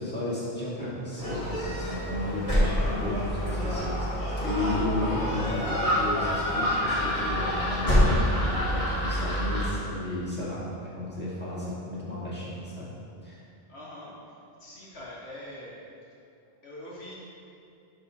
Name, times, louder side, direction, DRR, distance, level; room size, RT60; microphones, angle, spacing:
voice 1, 0.0-12.9 13.2-13.4, left 1 dB, 10° left, -9 dB, 1.8 m, -33 dB
Gull seagull, 1.2-9.7, equal, 35° left, 1.6 m, -27 dB
voice 2, 13.7-14.1 14.6-15.7 16.6-17.2, left 1 dB, 85° left, -6 dB, 1.8 m, -43 dB
11.0 x 3.7 x 4.1 m, 2.6 s
omnidirectional pair, 1.1 m